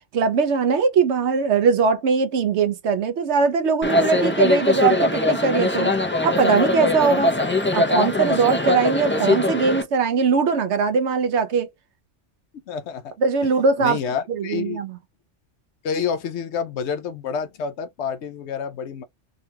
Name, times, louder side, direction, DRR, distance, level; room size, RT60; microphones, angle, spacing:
voice 1, 0.1-6.0 6.2-7.3 7.7-11.7 13.2-14.0 14.3-15.0, right 5 dB, 70° right, 0.9 m, -20 dB
sound 1, 3.8-9.8, left 2 dB, 15° left, 0.4 m, -21 dB
voice 2, 12.7-13.1 13.8-14.8 15.8-19.0, left 6 dB, 70° left, 0.8 m, -28 dB
3.7 x 2.3 x 2.7 m
omnidirectional pair, 1.2 m